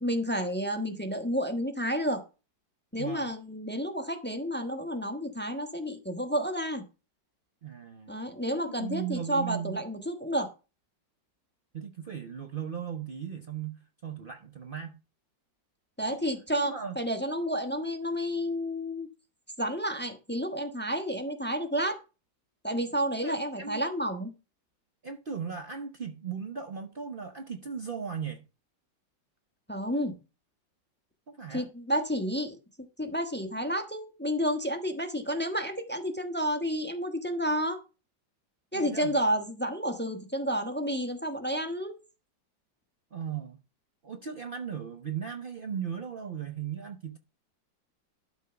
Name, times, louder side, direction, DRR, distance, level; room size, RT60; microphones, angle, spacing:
voice 1, 0.0-2.2 2.9-6.8 8.1-10.5 16.0-19.1 19.6-22.0 22.6-24.3 29.7-30.1 31.5-32.6 33.0-37.8 38.7-42.0, equal, 10° left, 0.8 m, -30 dB
voice 2, 3.0-3.3 7.6-8.1 8.8-9.8 11.7-15.0 16.1-16.2 16.6-17.0 23.2-23.8 25.0-28.4 31.3-31.7 38.7-39.2 43.1-43.6 44.0-47.2, right 7 dB, 75° right, 0.4 m, -37 dB
12.0 x 4.6 x 5.7 m
omnidirectional pair, 2.0 m